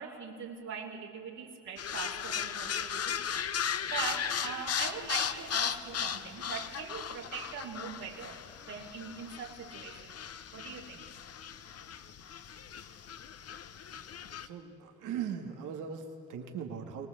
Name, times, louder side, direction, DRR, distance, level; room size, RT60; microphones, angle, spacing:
voice 1, 0.0-3.5 3.8-8.4 8.7-10.2 10.5-11.1, right 6 dB, 75° right, -4 dB, 3.6 m, -41 dB
sound 1, 1.8-14.5, left 8 dB, 55° left, 1.0 m, -37 dB
voice 2, 14.3-17.1, right 7 dB, 90° right, 4 dB, 2.3 m, -39 dB
24.5 x 19.5 x 8.1 m, 2.7 s
cardioid pair, 90°, 30 cm